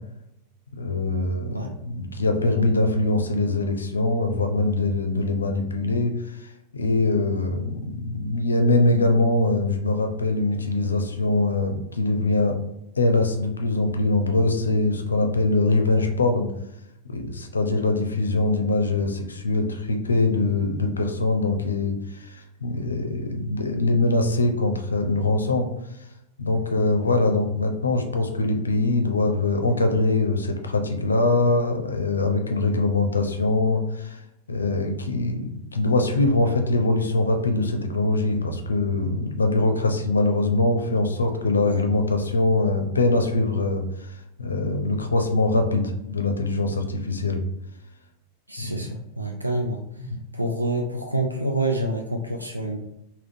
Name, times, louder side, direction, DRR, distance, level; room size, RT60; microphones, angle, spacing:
voice 1, 0.8-6.5 6.7-12.6 13.0-16.5 17.0-25.7 26.4-34.2 34.5-47.4 48.6-48.8 50.0-50.2, left 2 dB, 75° left, 5 dB, 0.4 m, -23 dB
voice 2, 48.5-49.8 50.3-52.8, right 1 dB, 85° right, 2 dB, 0.3 m, -27 dB
3.5 x 2.2 x 2.6 m, 0.83 s
figure-of-eight pair, 90°, 0 cm